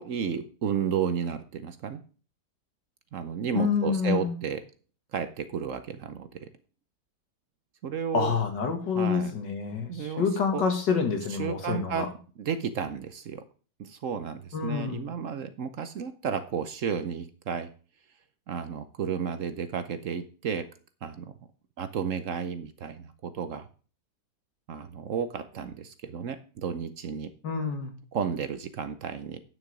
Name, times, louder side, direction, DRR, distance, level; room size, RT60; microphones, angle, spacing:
voice 1, 0.0-2.0 3.1-4.6 5.1-6.5 7.8-8.3 8.9-9.3 9.9-10.3 10.5-10.6 11.3-12.1 12.4-13.4 13.8-17.7 18.5-20.7 21.0-21.3 21.8-23.7 24.7-27.3 28.1-29.4, right 7 dB, 60° right, 11 dB, 0.9 m, -32 dB
voice 2, 3.5-4.3 8.1-12.1 14.5-15.1 27.4-27.9, left 5 dB, 90° left, 5 dB, 2.4 m, -27 dB
9.6 x 6.5 x 4.9 m, 0.38 s
omnidirectional pair, 1.8 m